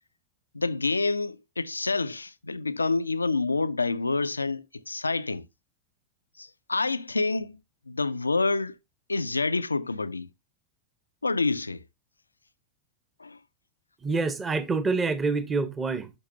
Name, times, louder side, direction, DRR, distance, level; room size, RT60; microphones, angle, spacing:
voice 1, 0.5-5.5 6.4-7.6 7.9-8.8 9.1-10.3 11.2-11.8 13.2-13.4, left 3 dB, 80° left, 0.5 m, -28 dB
voice 2, 14.0-16.1, right 4 dB, 15° right, 1.0 m, -26 dB
10.5 x 6.5 x 2.7 m
figure-of-eight pair, 90°, 0 cm